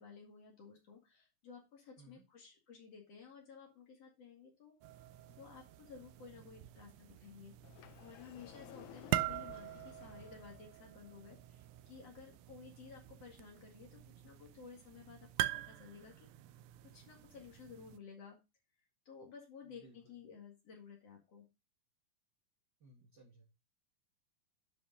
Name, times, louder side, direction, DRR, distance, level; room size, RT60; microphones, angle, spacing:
voice 1, 0.0-4.7 5.4-7.5 8.0-16.3 16.8-18.4 19.1-21.5, left 6 dB, 50° left, 0 dB, 2.8 m, -55 dB
sound 1, 4.8-18.0, right 14 dB, 80° right, 1.7 m, -44 dB
Sliding door, 7.6-10.6, left 13 dB, 80° left, 1.8 m, -55 dB
voice 2, 8.6-9.0 19.6-20.2 22.8-23.5, right 1 dB, 40° right, -1 dB, 1.7 m, -62 dB
11.0 x 5.2 x 3.8 m, 0.25 s
omnidirectional pair, 3.9 m